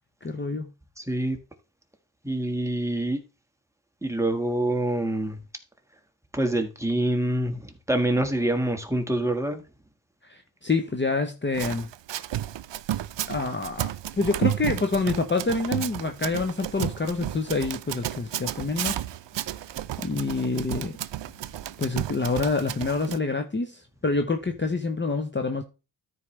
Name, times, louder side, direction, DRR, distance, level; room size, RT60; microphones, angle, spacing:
voice 1, 0.2-0.7 10.3-11.9 13.3-13.9 14.2-19.0 20.0-20.9 21.8-25.6, left 3 dB, 25° left, 0.8 m, -27 dB
voice 2, 1.0-1.4 2.2-3.2 4.0-5.4 6.3-9.6, right 1 dB, 5° right, 1.6 m, -26 dB
Run, 11.5-23.2, right 12 dB, 75° right, 0.5 m, -32 dB
13.5 x 4.6 x 3.2 m
wide cardioid pair, 85°, 44 cm